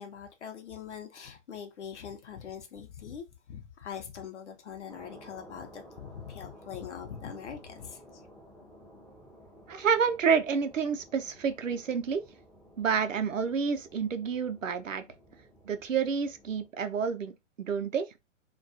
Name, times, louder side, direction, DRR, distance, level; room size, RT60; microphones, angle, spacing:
voice 1, 0.0-8.2, left 8 dB, 65° left, 0.7 m, -43 dB
sound 1, 4.9-16.7, equal, 5° left, 0.4 m, -54 dB
voice 2, 9.7-12.2 12.8-15.0 15.6-18.1, right 6 dB, 90° right, 0.6 m, -29 dB
2.3 x 2.3 x 2.6 m
figure-of-eight pair, 120°, 37 cm